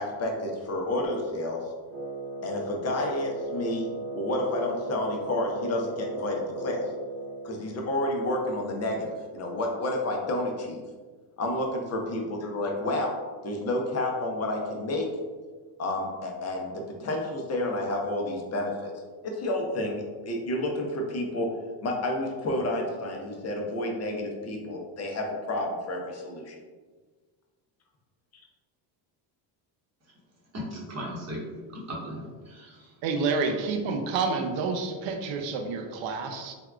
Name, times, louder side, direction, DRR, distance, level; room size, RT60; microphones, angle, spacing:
voice 1, 0.0-1.6 2.4-3.9 4.1-6.8 7.4-10.8 11.4-13.1 13.4-15.1 15.8-18.9 19.2-21.5 21.8-26.5, left 1 dB, 35° left, 1 dB, 0.6 m, -30 dB
Wind instrument woodwind instrument, 1.9-7.6, right 2 dB, 10° left, 1.4 m, -36 dB
voice 2, 30.5-31.4 31.7-32.9, equal, 35° right, -4 dB, 1.0 m, -37 dB
voice 3, 33.0-36.5, right 4 dB, 70° right, 5 dB, 0.6 m, -29 dB
3.4 x 2.2 x 2.3 m, 1.4 s
cardioid pair, 105°, 48 cm